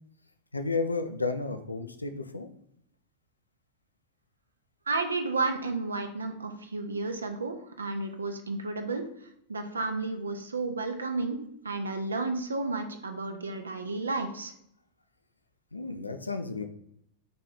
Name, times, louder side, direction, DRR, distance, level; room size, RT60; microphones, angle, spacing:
voice 1, 0.5-2.5 15.7-16.6, left 3 dB, 80° left, 8 dB, 0.4 m, -32 dB
voice 2, 4.9-9.0 9.5-14.5, right 3 dB, 75° right, 6 dB, 0.5 m, -32 dB
3.8 x 3.2 x 3.8 m, 0.73 s
figure-of-eight pair, 90°, 0 cm